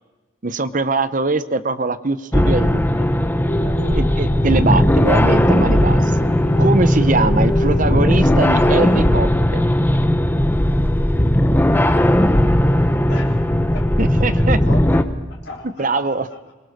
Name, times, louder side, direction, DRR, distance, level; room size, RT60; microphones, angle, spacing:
voice 1, 0.4-2.9 3.9-6.2 6.6-9.6 14.0-14.6 15.8-16.3, right 3 dB, 40° right, 13 dB, 0.8 m, -21 dB
sound 1, 2.3-15.0, left 1 dB, 10° left, 0.8 m, -17 dB
sound 2, 3.5-9.1, left 1 dB, 25° left, 1.9 m, -28 dB
voice 2, 13.0-13.8 14.4-15.0 15.4-16.5, left 2 dB, 55° left, -2 dB, 3.6 m, -36 dB
23.0 x 21.5 x 6.6 m, 1.2 s
head